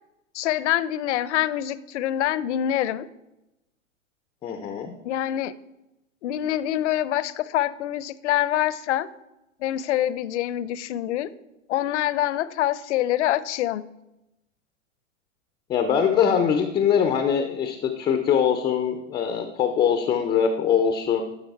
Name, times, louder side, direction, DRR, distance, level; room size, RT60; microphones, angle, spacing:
voice 1, 0.3-3.1 5.0-5.5 6.2-9.1 9.6-11.3 11.7-13.9, left 12 dB, 60° left, 17 dB, 0.6 m, -25 dB
voice 2, 4.4-4.9 15.7-21.2, left 7 dB, 10° left, 6 dB, 0.4 m, -22 dB
12.0 x 5.0 x 4.6 m, 0.94 s
hypercardioid pair, 120°, 40 cm